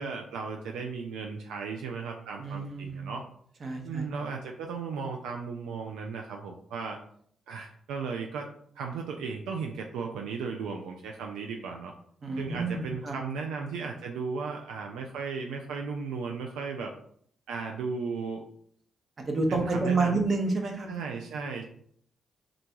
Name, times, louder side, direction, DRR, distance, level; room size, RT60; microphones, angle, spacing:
voice 1, 0.0-3.3 3.8-7.0 7.5-8.5 8.8-11.9 12.4-16.9 17.5-18.4 19.5-20.2 20.9-21.6, right 5 dB, 90° right, 2 dB, 0.4 m, -35 dB
voice 2, 2.4-3.1 3.6-4.1 12.2-13.2 19.3-20.9, right 3 dB, 50° right, 2 dB, 1.0 m, -29 dB
3.8 x 2.3 x 4.5 m, 0.64 s
supercardioid pair, 60°, 0 cm